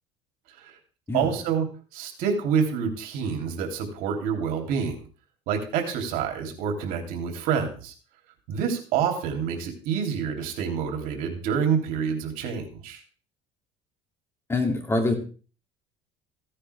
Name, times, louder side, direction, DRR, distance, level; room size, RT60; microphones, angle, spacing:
voice 1, 1.1-1.7 1.9-5.0 5.5-7.9 8.5-13.0, right 7 dB, 75° right, 3 dB, 3.1 m, -27 dB
voice 2, 14.5-15.1, left 2 dB, 15° left, 3 dB, 2.7 m, -24 dB
15.5 x 9.9 x 3.5 m, 0.38 s
cardioid pair, 120°, 15 cm